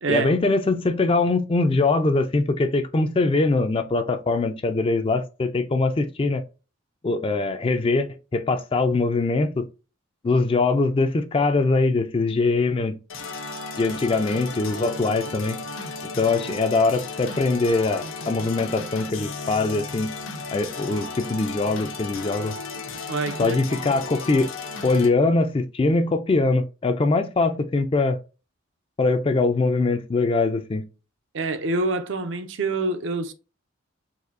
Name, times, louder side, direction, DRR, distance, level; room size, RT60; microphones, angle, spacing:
voice 1, 0.1-6.4 7.0-9.6 10.2-13.0 13.8-15.6 16.2-20.1 20.5-22.6 23.4-24.5 24.8-28.2 29.0-30.8, left 3 dB, 25° left, 0.3 m, -22 dB
sound 1, 13.1-25.1, left 3 dB, 75° left, 0.7 m, -35 dB
voice 2, 23.1-23.9 31.3-33.3, right 3 dB, 65° right, 0.5 m, -26 dB
4.1 x 2.6 x 2.5 m
head